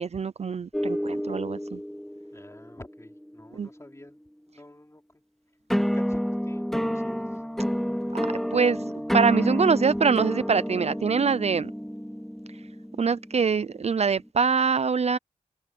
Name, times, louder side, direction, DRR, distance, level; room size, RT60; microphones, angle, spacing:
voice 1, 0.0-1.8 3.5-3.7 8.1-11.7 13.0-15.2, right 5 dB, 50° right, 0.5 m, -24 dB
sound 1, 0.7-4.1 5.7-14.3, equal, ahead, 2.0 m, -30 dB
voice 2, 2.3-4.2 4.5-5.2 5.8-7.4, left 1 dB, 20° left, 4.2 m, -48 dB
cardioid pair, 55°, 14 cm